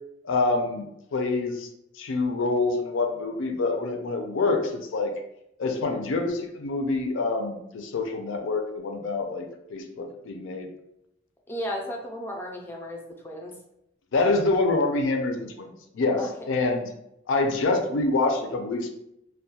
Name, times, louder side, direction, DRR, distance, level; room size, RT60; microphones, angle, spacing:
voice 1, 0.2-1.7 2.0-5.1 5.6-10.7 14.1-16.2 16.5-16.9 17.3-18.9, left 3 dB, 85° left, 4 dB, 0.4 m, -26 dB
voice 2, 5.7-6.0 11.5-13.5 16.2-16.3, equal, 10° left, -1 dB, 0.3 m, -35 dB
2.3 x 2.1 x 2.8 m, 0.81 s
head